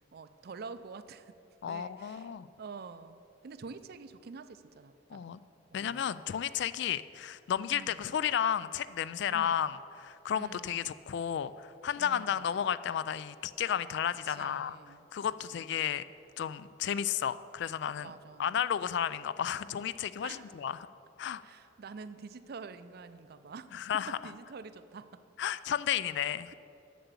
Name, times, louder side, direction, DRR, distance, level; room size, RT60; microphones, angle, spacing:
voice 1, 0.0-1.3 1.6-6.0 7.7-8.2 9.3-9.8 10.3-10.9 11.9-12.7 14.3-15.9 18.0-18.6 20.2-20.5 21.4-23.7 23.9-25.2, right 4 dB, 55° right, 12 dB, 0.4 m, -48 dB
voice 2, 1.6-2.5 5.1-5.4 5.7-14.8 15.1-16.0 16.4-18.1 18.4-20.9 21.2-21.4 23.7-24.2 25.4-26.5, left 9 dB, 60° left, 16 dB, 0.3 m, -33 dB
7.6 x 7.0 x 8.2 m, 2.8 s
head